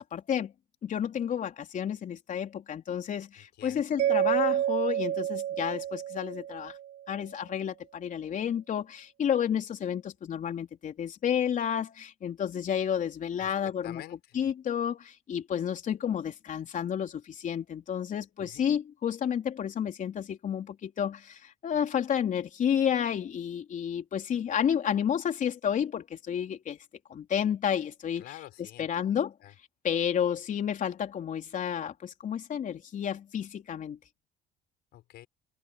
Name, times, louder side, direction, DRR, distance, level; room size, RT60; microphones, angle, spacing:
voice 1, 0.1-0.5 0.8-6.8 7.1-14.0 14.3-26.8 27.1-28.2 28.8-29.3 29.8-34.0, left 8 dB, 50° left, 3.9 m, -31 dB
voice 2, 3.4-3.8 13.4-14.5 18.4-18.7 28.2-29.5 34.9-35.3, left 14 dB, 75° left, 5.8 m, -49 dB
Mallet percussion, 4.0-7.0, right 11 dB, 65° right, 0.9 m, -29 dB
cardioid pair, 110°, 17 cm